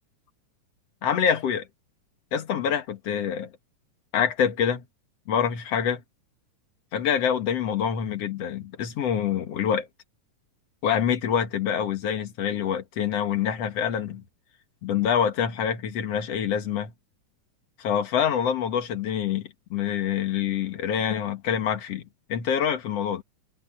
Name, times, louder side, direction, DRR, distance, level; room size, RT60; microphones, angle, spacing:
voice 1, 1.0-1.7 2.3-3.5 4.1-4.8 5.3-6.0 6.9-9.9 10.8-14.2 14.8-16.9 17.8-22.0 22.3-23.2, left 8 dB, 55° left, 2.5 m, -26 dB
omnidirectional pair, 3.7 m